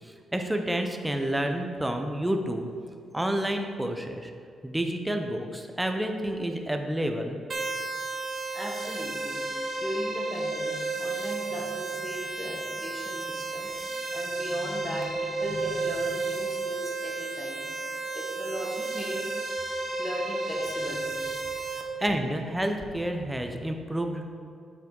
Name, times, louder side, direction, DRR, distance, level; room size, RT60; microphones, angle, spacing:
voice 1, 0.0-4.3 4.6-7.4 13.7-13.8 21.7-24.3, right 1 dB, 10° right, 4 dB, 0.6 m, -30 dB
sound 1, 7.5-21.8, right 3 dB, 40° right, 1.0 m, -32 dB
voice 2, 8.5-9.4 9.8-19.3 19.9-21.5 21.8-21.9, equal, 10° left, -2 dB, 1.2 m, -38 dB
7.4 x 5.9 x 3.8 m, 2.2 s
cardioid pair, 110°, 0 cm